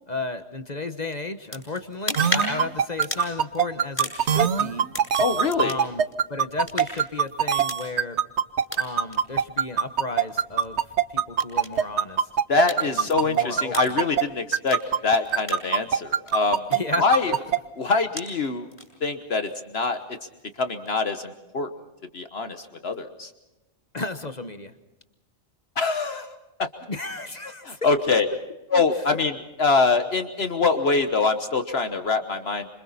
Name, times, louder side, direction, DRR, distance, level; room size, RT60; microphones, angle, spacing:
voice 1, 0.1-4.9 5.6-6.0 6.3-8.2 8.8-10.8 11.1-12.3 12.8-14.0 16.7-17.4 23.9-24.7 26.9-27.8 29.1-29.2, left 3 dB, 40° left, 9 dB, 1.2 m, -33 dB
sound 1, 1.4-21.0, equal, 20° left, 7.0 m, -39 dB
sound 2, 2.2-14.2 14.5-17.6, right 8 dB, 70° right, 1.2 m, -22 dB
voice 2, 5.2-5.8 12.5-16.6 17.0-17.4 17.8-18.7 19.0-20.0 20.6-21.7 22.1-23.3 25.8-26.3 26.6-26.7 27.6-28.3 28.7-32.7, left 4 dB, 60° left, 8 dB, 1.4 m, -24 dB
27.0 x 25.5 x 4.2 m, 1.0 s
omnidirectional pair, 1.2 m